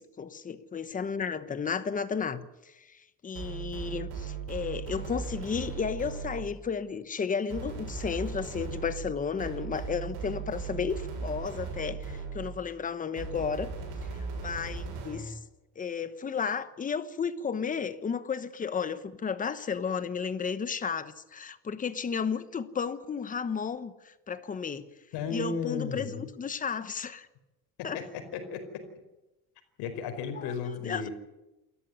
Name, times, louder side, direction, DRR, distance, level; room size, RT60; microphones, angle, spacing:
voice 1, 0.0-13.7 14.4-15.4 15.8-24.9 25.3-27.3 27.8-28.0 30.4-30.5 30.8-31.1, left 6 dB, 20° left, 1.1 m, -33 dB
sound 1, 3.4-6.6 7.5-12.6 13.2-15.4, right 5 dB, 70° right, 7.7 m, -38 dB
voice 2, 25.1-26.3 27.9-28.0 28.3-28.8 29.8-31.1, left 5 dB, 75° left, 4.8 m, -34 dB
27.5 x 14.0 x 9.5 m
cardioid pair, 175°, 41 cm